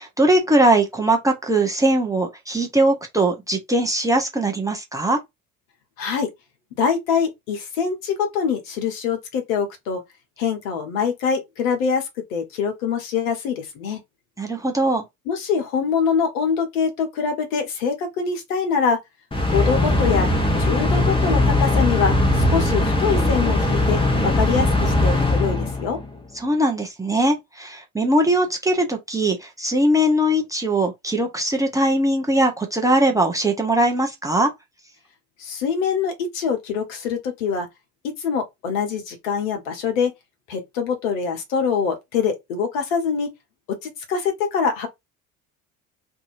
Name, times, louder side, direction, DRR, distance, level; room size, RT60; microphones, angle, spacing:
voice 1, 0.0-5.2 14.4-15.0 26.4-34.5, right 1 dB, 10° right, 0.7 m, -20 dB
voice 2, 6.0-6.3 6.8-10.0 10.4-14.0 15.3-19.0 19.5-20.3 20.6-26.0 35.4-37.7 38.0-40.1 40.5-43.3 43.7-44.9, left 6 dB, 65° left, 1.1 m, -24 dB
sound 1, 19.3-26.1, left 2 dB, 10° left, 1.1 m, -20 dB
2.7 x 2.6 x 2.5 m
figure-of-eight pair, 60°, 43 cm